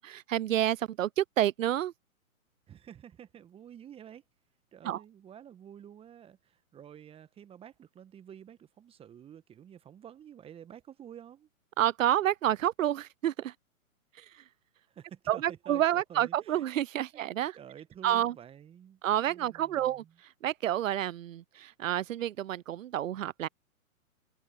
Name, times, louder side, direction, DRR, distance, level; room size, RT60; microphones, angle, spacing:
voice 1, 0.0-1.9 4.8-5.0 11.8-13.5 14.2-14.4 15.3-17.6 18.0-18.4 19.0-23.5, right 12 dB, 65° right, 0.6 m, -29 dB
voice 2, 2.7-4.2 4.7-11.5 14.8-16.6 17.1-17.2 17.5-20.1, right 9 dB, 15° right, 1.4 m, -50 dB
figure-of-eight pair, 120°, 43 cm